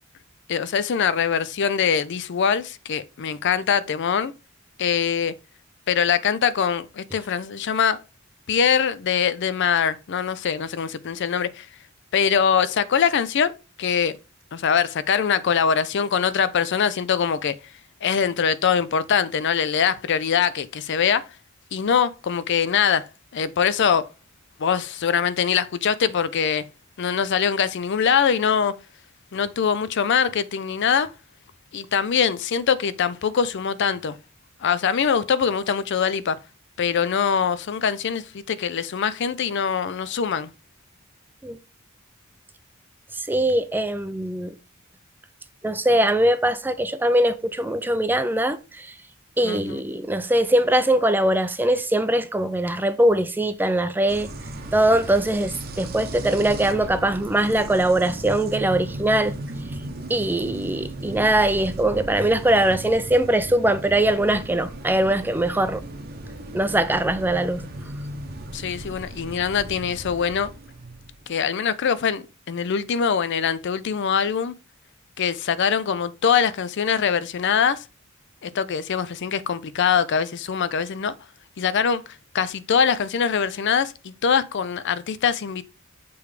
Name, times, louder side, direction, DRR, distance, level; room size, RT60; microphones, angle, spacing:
voice 1, 0.5-4.3 4.8-5.3 5.9-8.0 8.5-11.7 12.1-13.5 13.8-14.1 14.5-17.6 18.0-21.3 21.7-23.1 23.3-24.1 24.6-26.6 27.0-28.8 29.3-31.1 31.7-34.2 34.6-36.4 36.8-40.5 49.4-49.8 68.5-70.5 71.3-74.5 75.2-77.9 78.4-81.1 81.6-82.0 82.3-85.6, left 7 dB, 60° left, 0.4 m, -23 dB
voice 2, 43.1-44.5 45.6-48.9 49.4-54.3 54.7-59.3 60.1-65.8 66.5-67.6, right 1 dB, 10° right, 0.4 m, -21 dB
sound 1, 54.1-71.3, right 1 dB, 50° right, 0.9 m, -36 dB
7.0 x 3.3 x 4.8 m
head